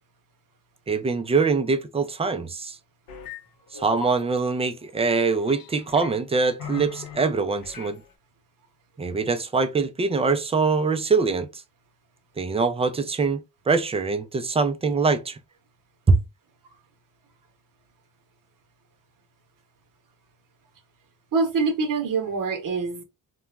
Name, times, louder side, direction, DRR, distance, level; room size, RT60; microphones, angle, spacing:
voice 1, 0.9-2.8 3.7-8.0 9.0-11.5 12.4-15.4 16.1-16.2, right 4 dB, 15° right, 0.3 m, -23 dB
sound 1, 3.1-3.4 3.7-4.2 5.2-6.1 6.6-7.2 7.6-8.0, left 6 dB, 60° left, 0.7 m, -39 dB
voice 2, 21.3-23.0, right 4 dB, 55° right, 0.8 m, -25 dB
3.0 x 2.2 x 2.3 m
cardioid pair, 90°, 39 cm